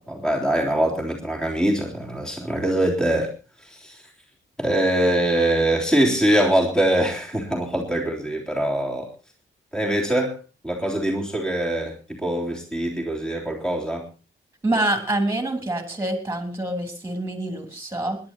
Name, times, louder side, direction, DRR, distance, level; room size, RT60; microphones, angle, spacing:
voice 1, 0.0-3.3 3.6-4.0 4.6-9.1 9.7-10.4 10.6-14.1, right 1 dB, 5° left, -1 dB, 3.4 m, -23 dB
voice 2, 14.6-18.2, right 1 dB, 10° right, 6 dB, 3.4 m, -26 dB
27.5 x 11.5 x 2.9 m, 0.31 s
wide cardioid pair, 165°, 21 cm